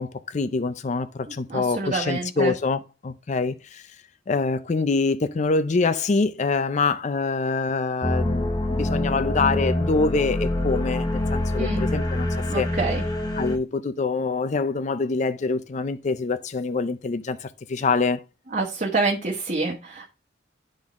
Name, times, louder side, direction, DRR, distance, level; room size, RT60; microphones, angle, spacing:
voice 1, 0.0-3.9 4.3-12.7 13.4-18.2, left 4 dB, 40° left, 0.4 m, -25 dB
voice 2, 1.5-2.5 11.6-11.8 12.5-13.0 18.5-20.1, right 3 dB, 45° right, 1.2 m, -27 dB
sound 1, 8.0-13.6, left 1 dB, 20° left, 0.9 m, -25 dB
11.5 x 3.9 x 3.5 m
head